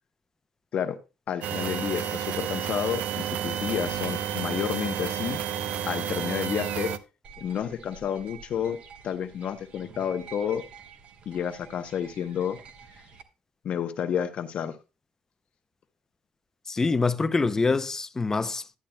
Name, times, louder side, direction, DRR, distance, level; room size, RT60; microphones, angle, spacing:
voice 1, 1.3-5.4 5.9-6.9 7.4-8.8 9.0-10.6 11.3-12.6 13.6-14.8, left 8 dB, 55° left, 0.7 m, -30 dB
sound 1, 1.4-7.0, right 9 dB, 75° right, 0.7 m, -31 dB
sound 2, 7.2-13.2, right 6 dB, 55° right, 1.2 m, -49 dB
voice 2, 16.7-18.8, left 4 dB, 20° left, 0.6 m, -25 dB
12.0 x 10.0 x 2.2 m
cardioid pair, 115°, 3 cm